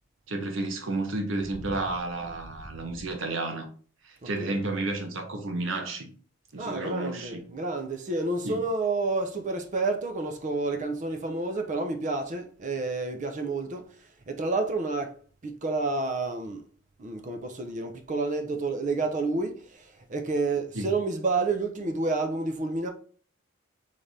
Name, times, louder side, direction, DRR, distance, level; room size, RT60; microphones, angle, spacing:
voice 1, 0.3-3.7 4.0-6.1 6.5-7.4 8.4-8.6 20.7-20.9, right 2 dB, 85° right, 0.9 m, -31 dB
voice 2, 4.2-4.6 6.6-13.8 14.3-15.1 15.4-16.6 17.0-22.9, right 3 dB, 40° right, 0.6 m, -29 dB
3.7 x 3.3 x 4.1 m
head